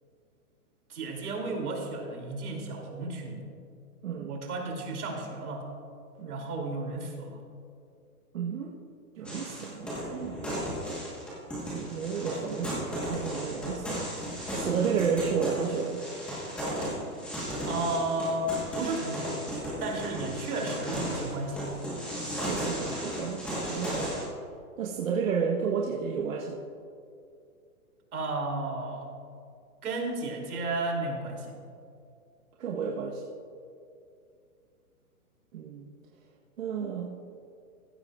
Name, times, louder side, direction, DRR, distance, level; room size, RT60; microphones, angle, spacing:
voice 1, 0.9-3.4 4.2-5.7 6.3-7.4 17.7-19.5 19.8-21.7 28.1-29.1 29.8-31.6, right 2 dB, 80° right, 0 dB, 3.0 m, -33 dB
voice 2, 4.0-4.3 6.2-6.5 8.3-8.7 9.2-10.4 11.7-14.1 14.5-16.0 22.4-24.1 24.8-26.6 32.6-33.2 35.5-35.9 36.6-37.1, right 6 dB, 60° right, -1 dB, 1.2 m, -32 dB
sound 1, 9.3-24.2, equal, ahead, 1.2 m, -35 dB
15.5 x 12.5 x 2.4 m, 2.4 s
hypercardioid pair, 170°, 45 cm